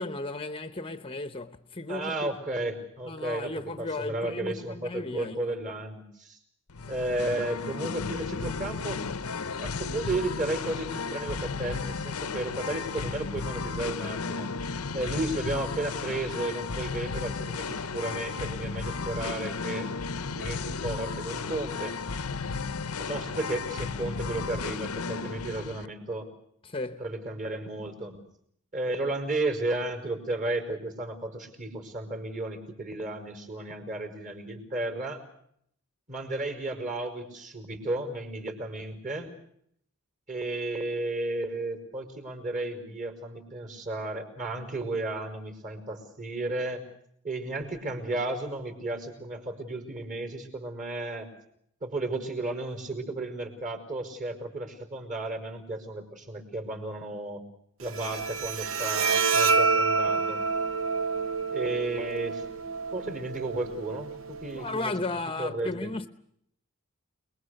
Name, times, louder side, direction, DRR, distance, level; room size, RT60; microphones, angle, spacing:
voice 1, 0.0-2.3 3.1-5.6 6.8-6.9 26.6-27.1 64.5-66.1, left 2 dB, 25° left, 0.9 m, -35 dB
voice 2, 1.9-6.4 6.9-9.0 9.6-14.5 14.9-19.9 20.4-22.0 23.0-26.3 27.0-28.2 28.7-35.2 36.1-39.3 40.3-46.8 47.2-51.3 51.8-57.4 57.8-60.4 61.5-62.4 62.9-64.9 65.4-65.9, right 2 dB, 35° right, 5.2 m, -33 dB
Singing, 6.7-25.9, left 4 dB, 90° left, 0.9 m, -34 dB
Bowed string instrument, 57.8-64.8, right 4 dB, 60° right, 1.0 m, -28 dB
28.5 x 21.0 x 6.5 m
head